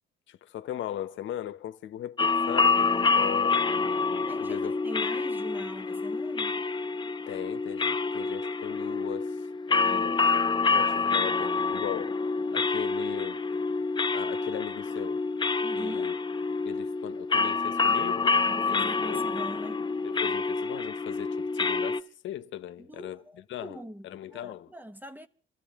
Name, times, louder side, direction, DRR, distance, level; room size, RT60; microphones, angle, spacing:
voice 1, 0.3-3.6 4.4-4.8 7.3-9.4 9.7-10.2 10.6-12.2 12.5-13.4 14.1-15.2 15.7-16.2 16.6-19.2 20.0-23.2 23.5-24.7, left 12 dB, 75° left, 0.9 m, -38 dB
sound 1, 2.2-22.0, left 4 dB, 25° left, 0.6 m, -27 dB
voice 2, 2.8-3.3 4.3-6.6 9.8-10.1 15.6-16.1 18.5-19.9 22.8-25.3, equal, 10° right, 0.9 m, -43 dB
25.5 x 14.0 x 3.5 m
cardioid pair, 90°, 20 cm